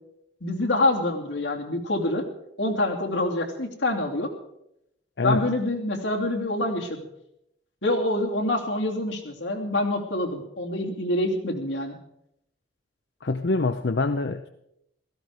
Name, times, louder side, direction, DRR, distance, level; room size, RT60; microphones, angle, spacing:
voice 1, 0.4-2.2 2.6-4.3 5.2-7.0 7.8-12.0, left 1 dB, 90° left, 0 dB, 2.9 m, -26 dB
voice 2, 5.2-5.5 13.2-14.5, left 3 dB, 65° left, 9 dB, 0.6 m, -25 dB
17.0 x 15.0 x 4.9 m, 0.79 s
head